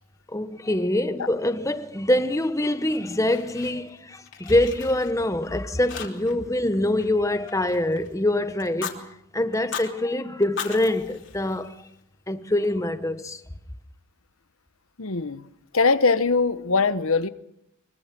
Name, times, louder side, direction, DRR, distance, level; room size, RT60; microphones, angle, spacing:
voice 1, 0.3-9.1 9.3-11.9 12.3-13.4, left 1 dB, 15° left, 1.0 m, -24 dB
Fire, 2.9-4.0 4.3-5.5 5.9-6.5 6.7-8.1 8.6-9.0 9.5-9.9 10.4-12.0, left 6 dB, 60° left, 3.1 m, -38 dB
voice 2, 15.0-15.4 15.7-17.3, left 4 dB, 80° left, 1.0 m, -21 dB
23.5 x 23.5 x 6.1 m
head